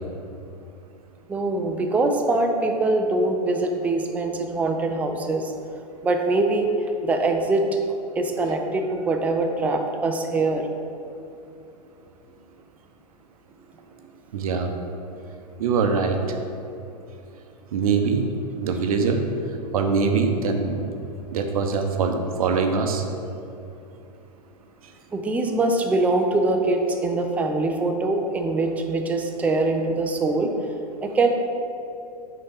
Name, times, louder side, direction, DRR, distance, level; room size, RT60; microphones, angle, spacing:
voice 1, 1.3-5.5 6.0-7.6 8.2-10.7 25.1-30.5 31.0-31.3, right 2 dB, 5° right, 4 dB, 0.3 m, -23 dB
voice 2, 14.3-14.7 15.6-16.4 17.7-18.2 18.6-19.3 19.7-20.8 21.3-23.0, right 5 dB, 60° right, 5 dB, 0.7 m, -23 dB
5.1 x 3.7 x 5.1 m, 2.7 s
figure-of-eight pair, 100°, 21 cm